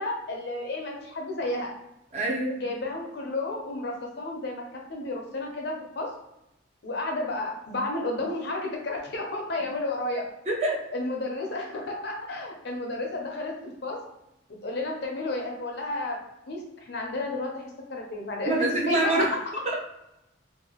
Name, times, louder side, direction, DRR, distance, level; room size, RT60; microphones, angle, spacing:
voice 1, 0.0-1.7 2.6-6.1 6.8-10.2 10.9-14.0 14.6-16.2 16.5-19.3, left 2 dB, 55° left, 1 dB, 0.6 m, -32 dB
voice 2, 2.1-2.6 10.5-10.8 18.5-19.3 19.7-19.8, right 2 dB, 35° right, -2 dB, 0.6 m, -25 dB
2.6 x 2.3 x 2.8 m, 0.89 s
head